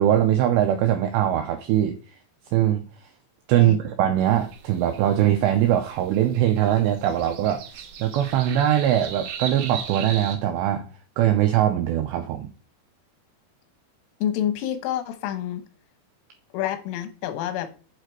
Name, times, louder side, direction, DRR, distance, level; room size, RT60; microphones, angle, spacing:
voice 1, 0.0-2.0 2.5-2.9 3.5-7.6 8.0-10.9 11.2-12.5, right 11 dB, 90° right, 2.4 m, -21 dB
sound 1, 4.2-10.4, right 7 dB, 70° right, 2.6 m, -38 dB
voice 2, 14.2-15.6 16.5-17.7, left 11 dB, 90° left, 3.6 m, -28 dB
8.1 x 4.9 x 4.5 m
omnidirectional pair, 5.6 m